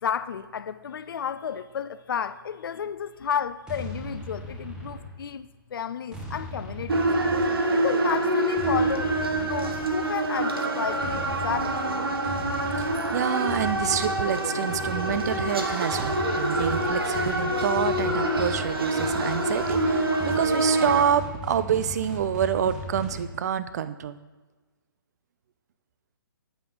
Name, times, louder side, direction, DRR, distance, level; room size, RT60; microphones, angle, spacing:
voice 1, 0.0-7.1 7.7-11.8, left 7 dB, 70° left, 0.4 m, -32 dB
sound 1, 3.7-5.4 6.1-7.8 8.6-10.2 11.0-23.3, equal, 5° right, 1.2 m, -38 dB
sound 2, 6.9-21.0, right 1 dB, 85° right, 1.2 m, -26 dB
voice 2, 12.8-24.2, right 9 dB, 45° right, 0.4 m, -27 dB
9.0 x 5.8 x 3.8 m
hypercardioid pair, 145°, 12 cm